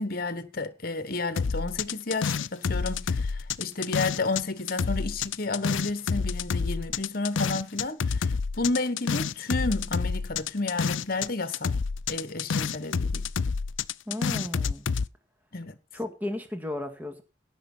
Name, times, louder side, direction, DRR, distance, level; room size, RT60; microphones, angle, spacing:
voice 1, 0.0-11.7 12.1-13.3 15.5-15.8, left 3 dB, 50° left, 1.3 m, -31 dB
sound 1, 1.4-4.4 4.7-11.3 11.5-15.1, left 5 dB, 80° left, 0.6 m, -28 dB
voice 2, 14.1-14.9 15.9-17.2, left 1 dB, 10° right, 2.1 m, -34 dB
17.0 x 6.4 x 5.6 m
head